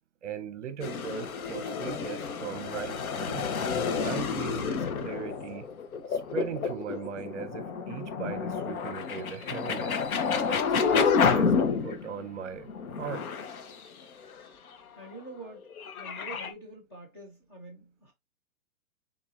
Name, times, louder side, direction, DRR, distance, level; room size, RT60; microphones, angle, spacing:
voice 1, 0.2-3.5 4.0-5.7 6.1-10.0 10.5-12.7 13.0-13.3, right 7 dB, 55° right, 0.8 m, -39 dB
sound 1, 0.8-12.2 12.7-14.4 15.4-16.5, left 5 dB, 75° left, 1.0 m, -29 dB
voice 2, 14.9-15.7 16.0-18.1, right 2 dB, 15° left, 0.6 m, -46 dB
4.4 x 3.8 x 2.4 m
hypercardioid pair, 165°, 44 cm